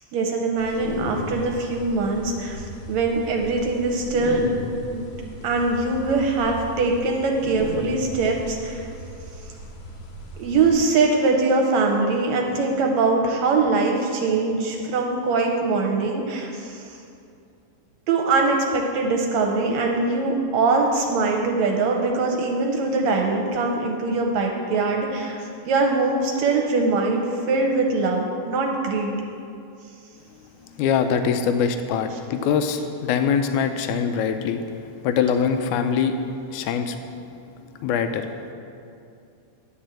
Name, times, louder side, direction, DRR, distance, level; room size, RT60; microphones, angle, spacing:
voice 1, 0.0-4.5 4.9-5.1 5.4-8.9 10.4-17.0 18.1-29.1, right 3 dB, 75° right, 1 dB, 1.8 m, -22 dB
sound 1, 0.6-10.8, left 1 dB, 65° left, 1.5 m, -36 dB
voice 2, 30.8-34.6 35.0-37.0 37.8-38.3, left 7 dB, 80° left, 8 dB, 1.9 m, -23 dB
10.5 x 4.4 x 7.5 m, 2.5 s
omnidirectional pair, 3.7 m